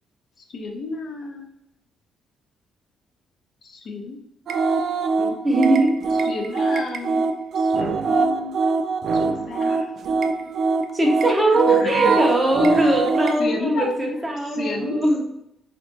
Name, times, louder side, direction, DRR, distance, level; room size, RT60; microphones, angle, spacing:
voice 1, 0.5-1.5 3.6-4.2 6.2-7.3 7.5-8.6 9.1-9.9 11.5-12.0 12.7-13.0 13.4-13.9 14.5-15.2, left 3 dB, 60° left, 2 dB, 0.7 m, -32 dB
sound 1, 4.5-13.5, right 4 dB, 65° right, 0.3 m, -23 dB
voice 2, 5.2-5.9 10.9-15.2, right 1 dB, 20° right, 0 dB, 1.0 m, -20 dB
4.2 x 2.6 x 2.7 m, 0.81 s
cardioid pair, 85°, 0 cm